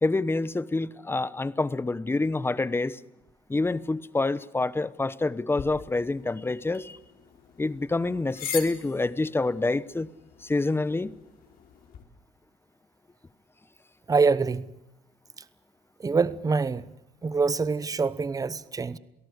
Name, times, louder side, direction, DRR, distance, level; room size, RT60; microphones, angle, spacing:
voice 1, 0.0-3.0 3.5-7.0 7.6-10.1 10.4-11.2, left 2 dB, 15° left, 0.9 m, -27 dB
sound 1, 5.5-12.0, left 8 dB, 60° left, 4.0 m, -43 dB
voice 2, 14.1-14.7 16.0-16.8 17.2-19.0, right 4 dB, 20° right, 0.9 m, -25 dB
28.0 x 18.0 x 8.1 m
cardioid pair, 110°, 17 cm